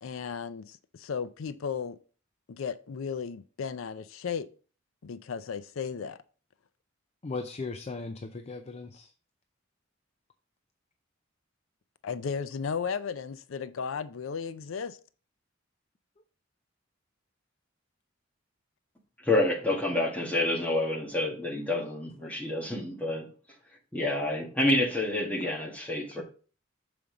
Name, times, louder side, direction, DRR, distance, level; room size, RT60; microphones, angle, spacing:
voice 1, 0.0-2.0 2.5-4.5 5.0-6.2 12.0-15.0, left 6 dB, 90° left, 0.5 m, -35 dB
voice 2, 7.2-9.1 22.2-22.3, left 3 dB, 35° left, 0.5 m, -37 dB
voice 3, 19.2-23.3 23.9-26.2, left 1 dB, 10° left, 1.6 m, -28 dB
7.0 x 5.0 x 3.8 m
head